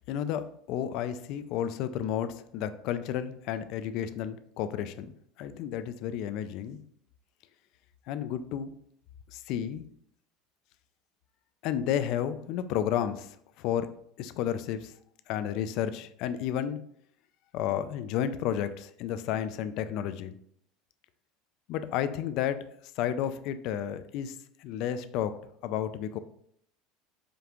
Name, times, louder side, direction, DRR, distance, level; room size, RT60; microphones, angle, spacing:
voice 1, 0.0-5.1 5.4-6.8 8.1-8.7 9.3-9.8 11.6-13.9 14.2-14.9 15.3-16.8 17.5-20.4 21.7-22.6 23.0-26.2, left 10 dB, 60° left, 12 dB, 0.3 m, -32 dB
5.0 x 2.4 x 2.9 m, 0.66 s
supercardioid pair, 125°, 0 cm